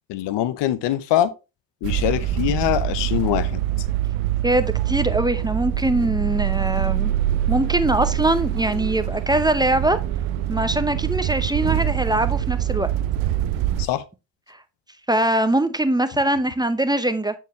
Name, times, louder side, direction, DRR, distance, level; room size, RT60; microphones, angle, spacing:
voice 1, 0.1-1.3 1.8-3.6 13.8-14.0, left 12 dB, 70° left, 0.7 m, -23 dB
sound 1, 1.8-13.9, right 12 dB, 85° right, 0.6 m, -24 dB
voice 2, 4.4-7.1 7.5-10.0 10.5-12.9 15.1-17.3, right 1 dB, 10° right, 0.7 m, -22 dB
8.1 x 4.6 x 3.1 m
supercardioid pair, 60°, 44 cm